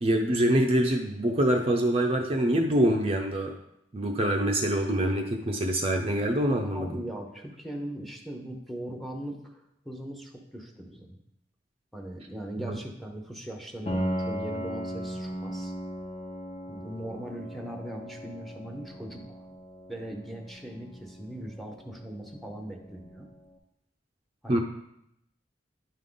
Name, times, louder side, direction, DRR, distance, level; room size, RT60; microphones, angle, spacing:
voice 1, 0.0-3.6 3.9-6.9 12.7-12.8 24.5-24.6, right 1 dB, 35° right, 3 dB, 0.5 m, -25 dB
voice 2, 6.6-11.2 11.9-15.7 16.7-19.2 19.9-23.3 24.4-24.6, right 1 dB, ahead, 2 dB, 0.8 m, -39 dB
Piano, 13.9-23.4, equal, 35° left, 1.1 m, -38 dB
10.0 x 3.7 x 3.8 m, 0.79 s
head